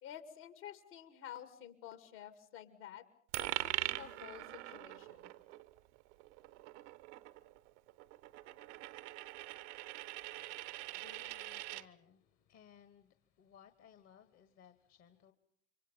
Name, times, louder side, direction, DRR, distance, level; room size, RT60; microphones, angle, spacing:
voice 1, 0.0-3.0 3.4-5.3, left 10 dB, 65° left, 10 dB, 2.5 m, -51 dB
Coin (dropping), 3.3-11.9, right 17 dB, 65° right, 0.9 m, -43 dB
voice 2, 10.3-15.3, left 9 dB, 45° left, 11 dB, 1.5 m, -62 dB
27.5 x 24.5 x 5.4 m, 0.62 s
figure-of-eight pair, 65°, 38 cm